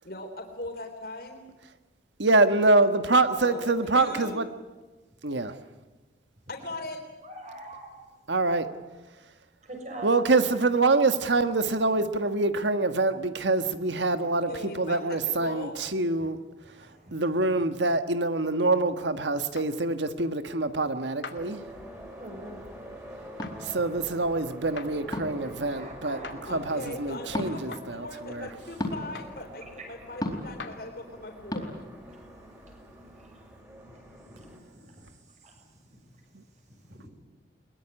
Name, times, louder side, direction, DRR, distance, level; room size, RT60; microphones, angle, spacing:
voice 1, 0.0-1.4 3.4-4.4 6.5-7.0 14.5-15.8 26.5-31.7, left 2 dB, 55° left, 3 dB, 3.8 m, -39 dB
voice 2, 2.2-4.5 5.2-5.5 8.3-8.7 10.0-16.4 17.1-21.6 23.7-26.2 26.5-28.5, right 3 dB, 80° right, 10 dB, 1.5 m, -25 dB
voice 3, 7.2-7.9 8.3-8.4 9.6-10.2 16.2-16.3 16.6-17.3 21.8-21.9 22.2-22.6 23.2-23.3 23.6-23.9 24.6-26.7 29.8-29.9 32.1-32.2 33.2-33.3 33.9-34.0 34.3-34.5 34.8-35.1 35.4-35.6 36.7-37.1, right 1 dB, 40° right, 3 dB, 6.7 m, -45 dB
sound 1, 19.6-19.7 21.2-21.4 23.4-23.6 24.8-24.9 26.2-26.4 27.7-27.9 29.1-29.4 30.6-30.8, left 5 dB, 85° left, 2.3 m, -41 dB
sound 2, 21.3-34.6, equal, 15° right, 6.0 m, -46 dB
sound 3, 23.4-23.6 25.1-25.4 27.3-27.5 28.8-29.0 30.2-30.5 31.5-31.6, left 1 dB, 20° left, 4.1 m, -31 dB
22.0 x 21.0 x 9.9 m, 1.2 s
head